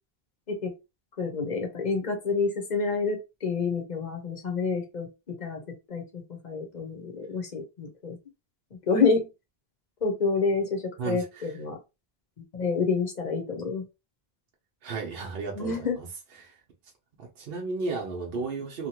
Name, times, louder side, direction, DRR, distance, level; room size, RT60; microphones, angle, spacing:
voice 1, 1.2-5.6 5.9-8.2 8.7-9.3 10.0-11.8 12.4-13.8 15.5-16.0, left 4 dB, 50° left, 0.8 m, -28 dB
voice 2, 14.8-16.1 16.4-16.5 17.2-18.9, right 4 dB, 65° right, 0.9 m, -33 dB
2.8 x 2.3 x 2.9 m
omnidirectional pair, 1.0 m